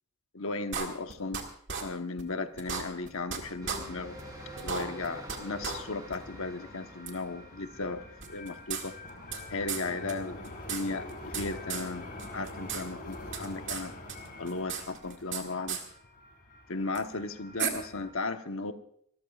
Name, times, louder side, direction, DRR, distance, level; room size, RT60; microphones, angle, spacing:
voice 1, 0.3-1.4 1.8-4.2 4.6-8.0 8.3-8.9 9.5-12.1 12.3-13.9 14.4-15.8 16.7-18.7, left 3 dB, 65° left, 7 dB, 1.1 m, -36 dB
sound 1, 0.7-1.4 1.7-1.8 2.2-2.3 2.6-3.4 3.7-3.8 4.2-4.3 4.6-5.4 5.6-5.8 6.1-6.2 7.1-7.2 8.2-9.4 9.7-9.8 10.1-10.2 10.4-11.4 11.7-11.9 12.2-12.8 13.1-13.8 14.1-15.4 15.7-15.8 17.0-17.1 17.6-17.7, right 7 dB, 55° right, 2.1 m, -34 dB
sound 2, 2.2-18.1, left 2 dB, 40° left, 4.2 m, -46 dB
sound 3, 3.6-14.0, equal, 15° right, 3.6 m, -50 dB
27.0 x 14.0 x 2.4 m, 0.67 s
head